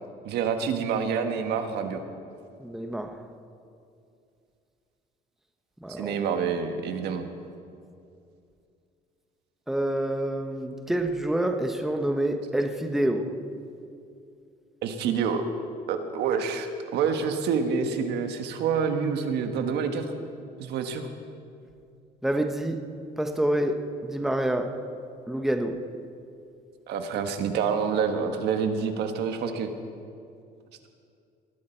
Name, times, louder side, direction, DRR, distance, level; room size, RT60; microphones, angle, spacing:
voice 1, 0.2-2.0 5.9-7.3 14.8-15.4 15.9-20.1 20.6-21.1 26.9-29.7, right 6 dB, 80° right, 6 dB, 1.5 m, -27 dB
voice 2, 2.6-3.2 5.8-6.2 9.7-13.4 22.2-22.8 23.2-24.7 25.3-25.8, right 1 dB, ahead, 5 dB, 1.0 m, -27 dB
20.0 x 14.0 x 4.5 m, 2.5 s
cardioid pair, 110°, 17 cm